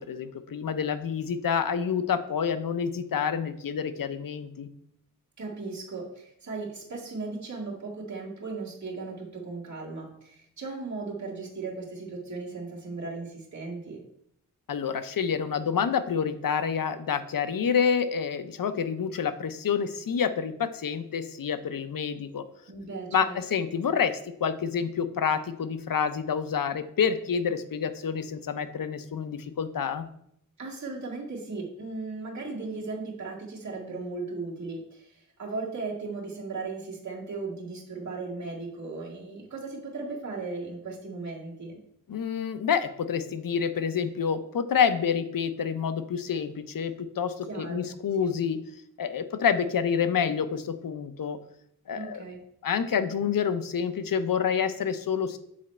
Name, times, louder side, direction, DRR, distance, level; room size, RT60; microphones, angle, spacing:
voice 1, 0.0-4.7 14.7-22.4 23.1-30.1 42.1-48.6 49.0-51.4 51.9-52.2 52.6-55.4, left 7 dB, 75° left, 11 dB, 0.6 m, -28 dB
voice 2, 5.4-14.0 22.7-23.4 30.6-41.8 47.5-47.9 48.2-48.3 51.9-52.4, right 3 dB, 55° right, -4 dB, 1.9 m, -37 dB
7.5 x 4.1 x 4.3 m, 0.72 s
wide cardioid pair, 85°, 34 cm